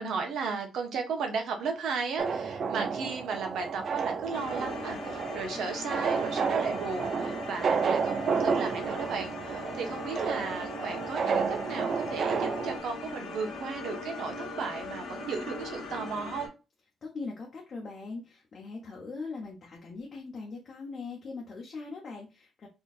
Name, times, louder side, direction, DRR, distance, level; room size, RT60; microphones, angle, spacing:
voice 1, 0.0-16.5, right 5 dB, 75° right, 4 dB, 1.2 m, -35 dB
sound 1, 2.2-12.8, right 5 dB, 45° right, 0.4 m, -31 dB
sound 2, 4.3-16.5, left 2 dB, 80° left, 1.3 m, -40 dB
voice 2, 17.0-22.7, left 4 dB, 35° left, -2 dB, 1.0 m, -41 dB
4.2 x 3.1 x 2.5 m, 0.29 s
cardioid pair, 170°, 0 cm